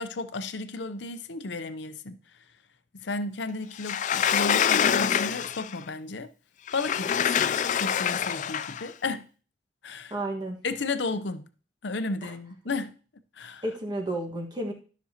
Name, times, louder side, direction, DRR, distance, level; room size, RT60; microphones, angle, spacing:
voice 1, 0.0-2.2 3.0-6.3 6.7-9.3 9.8-10.1 10.6-11.5 11.8-12.9 13.4-13.6, left 3 dB, 75° left, 0.7 m, -33 dB
Sliding door, 3.8-5.8 6.7-8.9, left 8 dB, 40° left, 0.3 m, -25 dB
voice 2, 10.1-10.6 12.2-12.3 13.6-14.7, right 1 dB, 25° right, 1.5 m, -31 dB
13.0 x 6.2 x 2.9 m
head